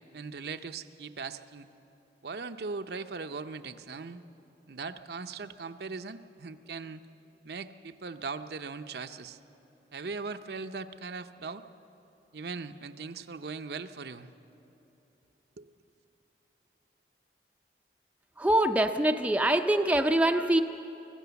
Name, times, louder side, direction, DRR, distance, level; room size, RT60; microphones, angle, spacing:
voice 1, 0.1-1.7 2.2-4.2 4.7-7.0 7.4-9.4 9.9-11.6 12.3-14.3 15.6-15.7, right 4 dB, 65° right, 9 dB, 0.6 m, -39 dB
voice 2, 18.4-20.6, right 1 dB, 10° right, 6 dB, 0.5 m, -24 dB
24.5 x 15.5 x 7.0 m, 3.0 s
head